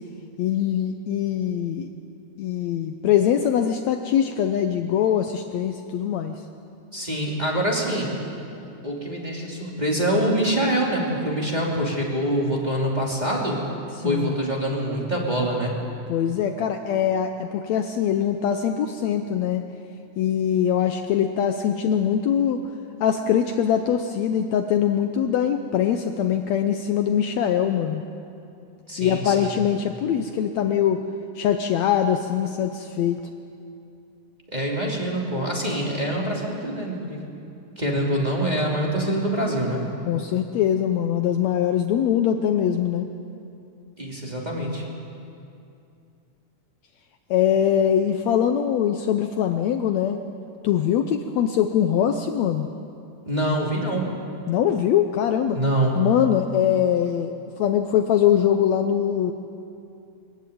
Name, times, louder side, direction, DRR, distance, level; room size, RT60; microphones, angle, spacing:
voice 1, 0.4-1.9 2.4-6.4 14.0-14.4 16.1-19.7 20.2-22.6 23.0-28.0 29.0-31.0 31.4-33.2 40.1-43.1 47.3-50.2 50.6-52.7 54.5-55.6 56.0-57.3 57.6-59.3, left 9 dB, 70° left, 6 dB, 1.8 m, -22 dB
voice 2, 6.9-8.1 8.8-13.6 14.0-15.8 28.9-29.5 34.5-37.2 37.8-39.8 44.0-44.8 53.2-54.1 55.5-55.9, right 1 dB, 15° right, -3 dB, 2.8 m, -25 dB
22.5 x 15.0 x 9.3 m, 2.6 s
omnidirectional pair, 3.6 m